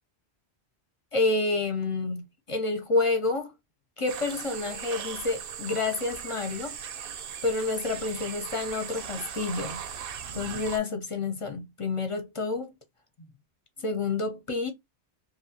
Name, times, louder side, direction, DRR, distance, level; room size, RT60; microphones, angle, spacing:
voice 1, 1.1-3.5 4.0-6.8 7.4-9.8 10.3-12.7 13.2-13.3 13.8-14.7, left 3 dB, 35° left, 0.6 m, -29 dB
sound 1, 4.1-10.8, right 8 dB, 65° right, 0.7 m, -38 dB
2.8 x 2.6 x 2.7 m
omnidirectional pair, 1.1 m